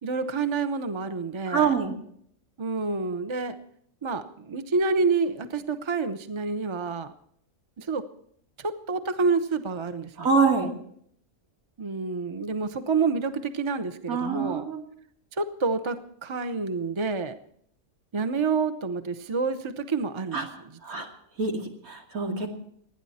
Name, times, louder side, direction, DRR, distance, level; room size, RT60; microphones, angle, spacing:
voice 1, 0.0-1.7 2.6-3.6 4.0-7.1 7.8-8.0 8.6-10.3 11.8-14.6 15.4-17.3 18.1-21.1, right 4 dB, 25° right, 10 dB, 0.8 m, -28 dB
voice 2, 1.5-1.9 10.2-10.7 14.1-14.8 20.3-20.5 20.8-21.1 21.4-22.5, right 5 dB, 85° right, 2 dB, 2.9 m, -25 dB
29.5 x 10.0 x 4.3 m, 0.66 s
omnidirectional pair, 1.4 m